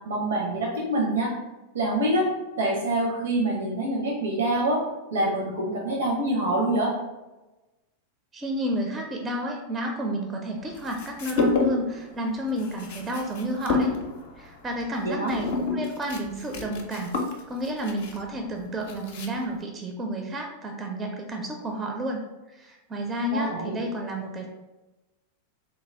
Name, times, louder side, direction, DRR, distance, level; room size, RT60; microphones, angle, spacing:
voice 1, 0.0-1.3 1.7-4.8 5.1-6.9 15.0-15.3 23.3-23.8, right 1 dB, 65° right, -2 dB, 0.6 m, -25 dB
voice 2, 8.3-13.9 14.4-17.2 17.5-22.2 22.5-24.5, equal, 20° right, 2 dB, 0.4 m, -31 dB
sound 1, 10.8-12.0 12.3-19.6, left 3 dB, 55° left, 0.5 m, -29 dB
3.4 x 2.2 x 3.2 m, 1.1 s
figure-of-eight pair, 90°, 0 cm